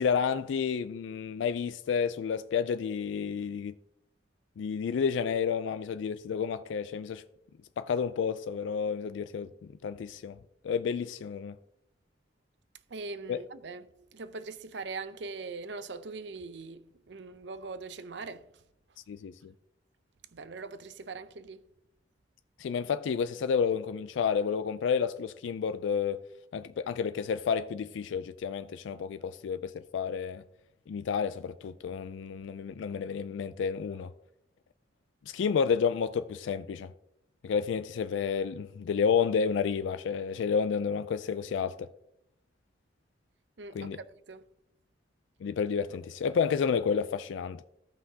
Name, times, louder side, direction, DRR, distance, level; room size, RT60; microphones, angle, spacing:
voice 1, 0.0-3.7 4.6-7.2 7.8-9.5 9.8-10.4 10.6-11.6 13.3-13.4 19.1-19.5 22.6-26.2 26.5-30.4 30.9-34.1 35.3-36.9 37.4-41.9 43.7-44.0 45.4-47.6, left 6 dB, 80° left, 0.3 m, -30 dB
voice 2, 12.9-13.8 14.1-16.8 17.1-18.4 20.3-21.6 43.6-43.9 44.3-44.4, right 4 dB, 70° right, 0.6 m, -41 dB
15.0 x 5.7 x 2.8 m
head